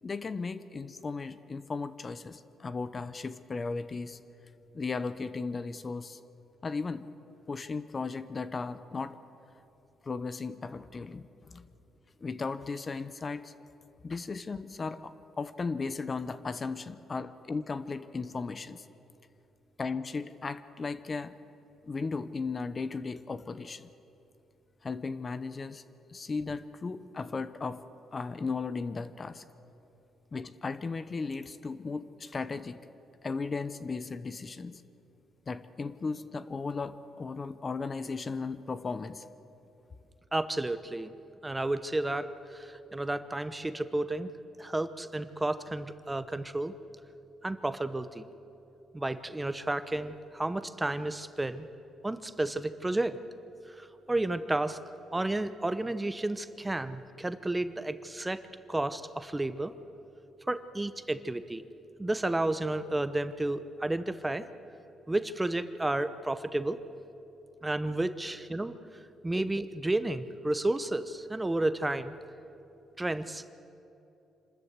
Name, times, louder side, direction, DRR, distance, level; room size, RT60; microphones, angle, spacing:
voice 1, 0.0-4.2 4.7-6.2 6.6-7.1 7.5-9.2 10.0-11.6 12.2-13.5 14.0-18.8 19.8-21.4 21.8-23.9 24.8-25.8 26.1-27.8 28.1-29.4 30.3-32.8 33.2-34.8 35.5-39.2, left 4 dB, 35° left, 13 dB, 0.8 m, -36 dB
voice 2, 40.3-41.1 41.4-44.3 44.6-46.7 47.4-48.3 48.9-51.7 52.0-53.2 53.7-54.8 55.1-58.4 58.7-59.7 60.5-61.6 62.0-64.4 65.1-66.8 67.6-68.7 69.2-72.2 73.0-73.5, right 2 dB, 15° right, 12 dB, 0.8 m, -32 dB
26.5 x 13.5 x 8.1 m, 2.8 s
cardioid pair, 90°, 0 cm